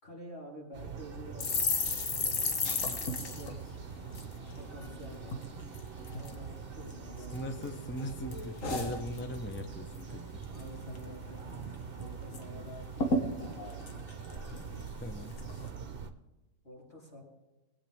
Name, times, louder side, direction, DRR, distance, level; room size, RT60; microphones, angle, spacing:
voice 1, 0.0-1.8 3.3-3.8 4.5-5.4 6.1-8.0 8.3-8.4 10.5-11.7 12.0-14.2 16.6-17.2, left 1 dB, 50° left, -4 dB, 4.2 m, -49 dB
sound 1, 0.7-16.1, right 6 dB, 45° right, 1.1 m, -44 dB
sound 2, 1.4-4.9 5.2-5.5 5.7-6.4 6.9-7.7 8.0-9.6 9.9-10.2 10.4-11.0 11.4-11.5 11.7-12.4 12.7-12.8 13.0-14.9 15.4-15.7, left 3 dB, 75° left, 1.6 m, -34 dB
voice 2, 7.3-10.2 12.5-12.6 15.0-15.4, left 1 dB, 10° left, 6 dB, 0.7 m, -40 dB
21.0 x 8.9 x 3.5 m, 1.1 s
omnidirectional pair, 1.4 m